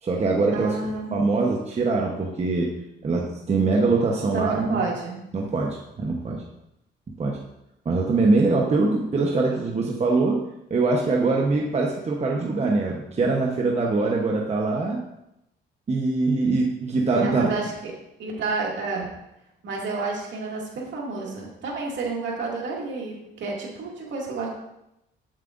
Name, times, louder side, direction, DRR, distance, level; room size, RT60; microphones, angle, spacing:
voice 1, 0.0-0.8 1.1-2.7 3.0-4.8 5.3-6.4 7.2-7.4 7.8-10.4 10.7-15.0 15.9-17.5, right 3 dB, 35° right, -1 dB, 1.0 m, -23 dB
voice 2, 0.5-1.1 4.3-5.2 17.1-19.1 19.6-24.5, right 3 dB, 65° right, -2 dB, 2.3 m, -30 dB
8.1 x 7.5 x 2.6 m, 0.86 s
cardioid pair, 90°, 20 cm